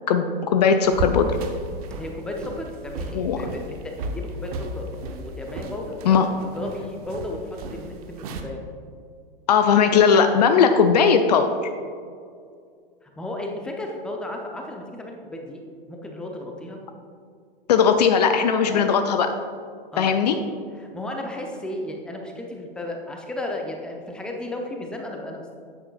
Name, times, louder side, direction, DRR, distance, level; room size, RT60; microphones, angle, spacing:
voice 1, 0.1-1.4 3.1-3.4 6.1-6.3 9.5-11.5 17.7-19.3 20.0-20.4, left 6 dB, 45° left, 8 dB, 0.5 m, -18 dB
sound 1, 0.8-8.4, right 1 dB, 40° right, 0.8 m, -34 dB
voice 2, 2.0-8.6 13.0-15.6 15.9-16.8 18.7-18.9 19.9-20.1 20.8-25.5, left 1 dB, 5° left, 1 dB, 0.6 m, -34 dB
9.4 x 8.0 x 2.4 m, 2.2 s
figure-of-eight pair, 100°, 29 cm